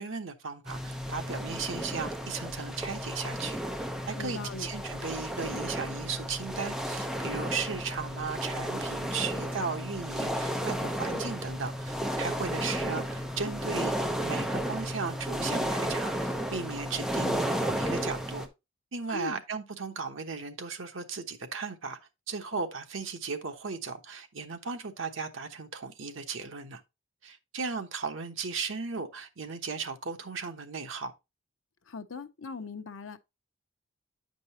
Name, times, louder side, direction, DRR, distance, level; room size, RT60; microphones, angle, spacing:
voice 1, 0.0-3.6 4.1-18.4 18.9-22.0 22.3-26.8 27.2-31.1, right 5 dB, 80° right, 1.0 m, -36 dB
sound 1, 0.7-18.5, equal, ahead, 0.8 m, -33 dB
voice 2, 4.2-4.7 19.1-19.4 31.9-33.2, left 4 dB, 85° left, 0.7 m, -39 dB
8.9 x 5.3 x 2.9 m
head